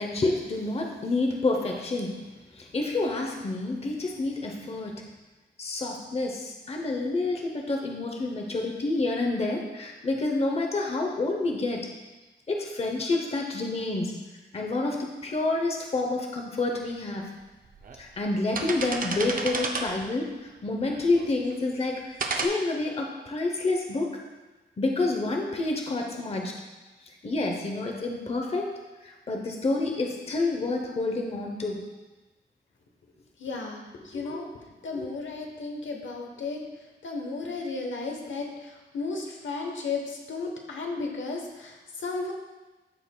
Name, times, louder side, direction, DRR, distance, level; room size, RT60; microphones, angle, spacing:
voice 1, 0.0-2.2 2.5-5.0 5.6-11.9 12.5-14.1 14.5-17.3 18.0-24.2 24.8-26.6 27.2-28.7 29.0-31.8 34.1-34.4 34.9-35.1, left 2 dB, 30° left, 2 dB, 0.7 m, -28 dB
sound 1, 16.9-17.0 17.7-18.0 18.3-20.1 20.8-21.5 22.2-22.5, right 4 dB, 45° right, 0.5 m, -31 dB
voice 2, 33.4-34.5 34.8-36.6 37.0-42.3, left 3 dB, 80° left, 1 dB, 1.0 m, -34 dB
13.5 x 4.6 x 2.2 m, 1.2 s
wide cardioid pair, 180°, 19 cm